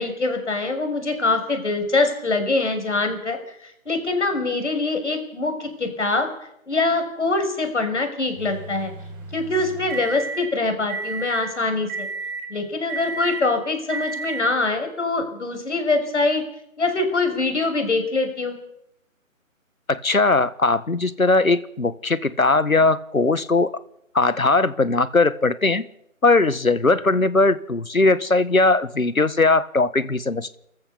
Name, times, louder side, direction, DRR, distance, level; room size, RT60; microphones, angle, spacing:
voice 1, 0.0-6.3 6.7-8.9 9.3-12.1 12.5-16.4 16.8-18.6, left 3 dB, 55° left, 5 dB, 6.2 m, -24 dB
sound 1, 8.4-10.4 10.9-11.4 11.9-12.4 12.9-13.4 13.9-14.4, right 3 dB, 15° right, 4.4 m, -32 dB
voice 2, 19.9-23.7 24.1-25.8 26.2-30.6, left 3 dB, 85° left, 15 dB, 1.7 m, -19 dB
28.0 x 14.5 x 7.0 m, 0.79 s
figure-of-eight pair, 155°, 41 cm